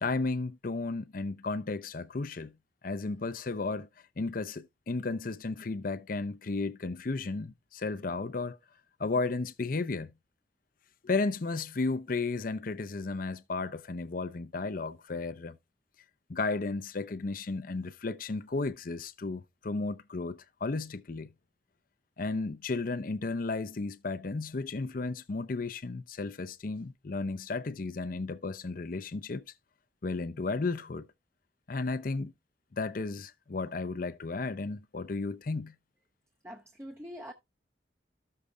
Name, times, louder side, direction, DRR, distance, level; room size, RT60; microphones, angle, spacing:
voice 1, 0.0-2.5 2.8-3.9 4.2-8.6 9.0-10.1 11.0-15.6 16.3-21.3 22.2-29.4 30.0-31.1 31.7-32.3 32.7-35.7, left 3 dB, 50° left, 0.6 m, -34 dB
voice 2, 36.4-37.3, equal, 15° right, 0.6 m, -44 dB
14.0 x 6.6 x 2.3 m
head